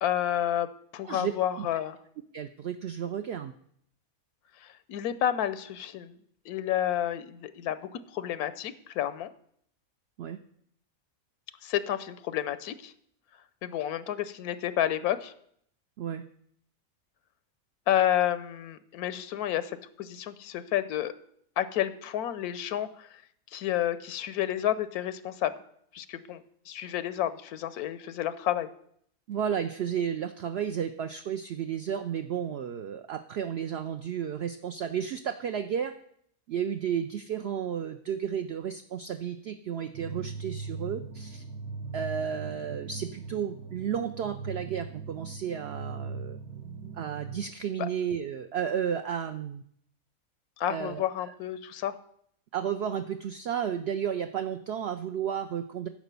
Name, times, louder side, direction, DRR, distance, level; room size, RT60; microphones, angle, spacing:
voice 1, 0.0-0.7 0.9-2.0 4.6-6.2 6.5-9.3 11.6-12.9 13.6-15.3 17.9-21.1 21.6-23.2 23.5-25.5 25.9-28.7 47.8-47.9 50.6-52.0, left 11 dB, 90° left, 14 dB, 1.1 m, -30 dB
voice 2, 1.0-1.7 2.3-3.5 10.2-10.4 16.0-16.2 29.3-35.9 36.5-41.4 41.9-46.4 46.9-49.6 50.7-51.0 52.5-55.9, right 8 dB, 70° right, 8 dB, 0.6 m, -32 dB
sound 1, 39.9-47.5, right 4 dB, 85° right, 1.4 m, -40 dB
10.5 x 5.1 x 6.8 m, 0.68 s
omnidirectional pair, 1.5 m